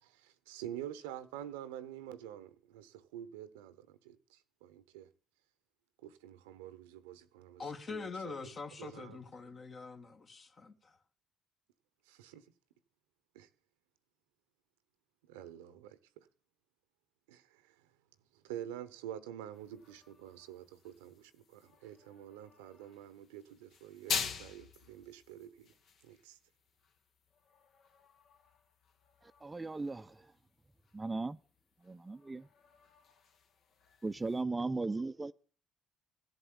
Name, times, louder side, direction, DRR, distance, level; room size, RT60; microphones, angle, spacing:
voice 1, 0.0-5.1 6.0-9.2 12.1-12.4 13.3-13.5 15.3-16.3 17.3-17.9 18.3-25.7 26.0-26.4, right 11 dB, 80° right, 0.9 m, -48 dB
voice 2, 7.6-11.0, left 4 dB, 45° left, 2.0 m, -44 dB
sound 1, 19.5-34.4, left 6 dB, 60° left, 1.7 m, -46 dB
voice 3, 29.4-30.3 30.9-31.4 31.8-32.5 34.0-35.3, right 3 dB, 20° right, 0.6 m, -37 dB
16.5 x 7.9 x 8.8 m
hypercardioid pair, 50°, 0 cm